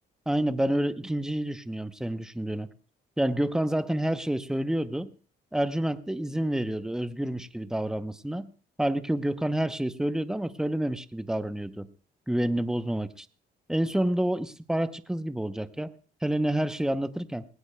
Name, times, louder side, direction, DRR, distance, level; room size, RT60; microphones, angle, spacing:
voice 1, 0.3-2.7 3.2-5.1 5.5-8.5 8.8-11.9 12.3-13.3 13.7-15.9 16.2-17.4, right 1 dB, 5° right, 12 dB, 0.7 m, -28 dB
19.5 x 17.5 x 2.2 m, 0.39 s
cardioid pair, 90°, 20 cm